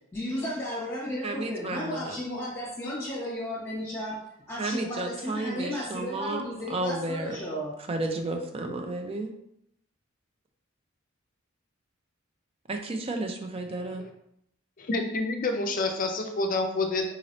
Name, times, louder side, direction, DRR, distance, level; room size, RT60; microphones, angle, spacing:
voice 1, 0.1-7.7, left 1 dB, 15° left, -6 dB, 1.3 m, -34 dB
voice 2, 1.2-2.2 4.6-6.4 6.7-7.4 7.9-9.3 12.7-14.1, right 2 dB, 30° right, 5 dB, 0.4 m, -32 dB
voice 3, 14.8-17.1, left 2 dB, 40° left, 4 dB, 0.5 m, -28 dB
3.9 x 3.0 x 2.7 m, 0.76 s
head